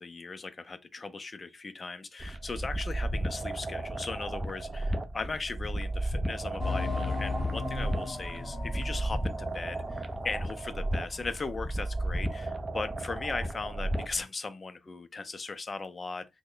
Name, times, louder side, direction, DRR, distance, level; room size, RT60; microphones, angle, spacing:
voice 1, 0.0-16.3, left 4 dB, 30° left, 0.5 m, -38 dB
sound 1, 2.2-14.2, right 1 dB, 20° right, 0.5 m, -34 dB
sound 2, 6.6-10.9 11.2-11.3 11.9-12.0, left 3 dB, 10° left, 0.9 m, -36 dB
3.0 x 2.1 x 3.8 m
cardioid pair, 115°, 0 cm